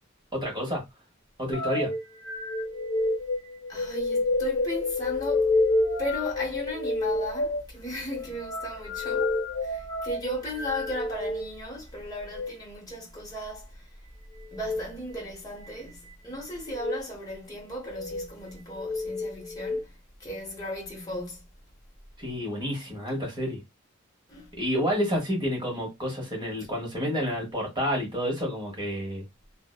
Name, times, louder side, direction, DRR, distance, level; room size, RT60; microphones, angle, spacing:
voice 1, 0.3-0.8 1.4-1.9 22.2-23.6 24.6-29.2, equal, 20° right, 1.0 m, -29 dB
sound 1, 1.5-11.5 12.2-12.5 14.5-14.8 15.6-16.1 16.7-17.0 17.8-18.3 18.8-19.8, left 2 dB, 85° left, 0.6 m, -29 dB
voice 2, 3.7-5.5 6.0-9.3 9.6-13.8 14.5-19.9 20.2-21.4 24.3-24.5, equal, 20° left, 0.9 m, -36 dB
2.6 x 2.1 x 2.3 m
head